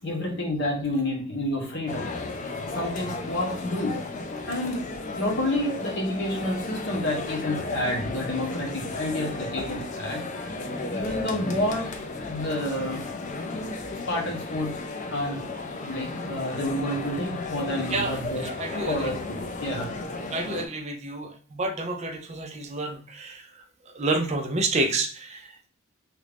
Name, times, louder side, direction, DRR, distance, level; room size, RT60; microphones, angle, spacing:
voice 1, 0.0-2.1 2.4-4.0 4.4-4.8 5.2-10.3 10.9-11.9 12.3-13.1 14.1-14.8 15.1-15.4 15.8-18.4 18.9-19.9, left 1 dB, 60° left, -1 dB, 1.1 m, -29 dB
sound 1, 1.9-20.7, left 3 dB, 35° left, 0.4 m, -34 dB
voice 2, 18.4-19.1 20.3-23.4 23.9-25.7, right 2 dB, 35° right, 4 dB, 0.5 m, -29 dB
3.0 x 2.4 x 3.4 m, 0.41 s
head